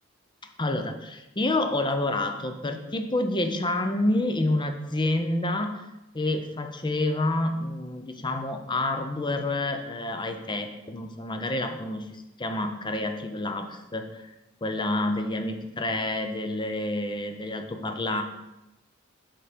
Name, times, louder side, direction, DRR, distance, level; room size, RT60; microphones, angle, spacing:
voice 1, 0.6-5.9 6.1-14.3 14.6-18.2, left 2 dB, 25° left, 6 dB, 0.6 m, -28 dB
7.0 x 3.8 x 5.0 m, 0.94 s
head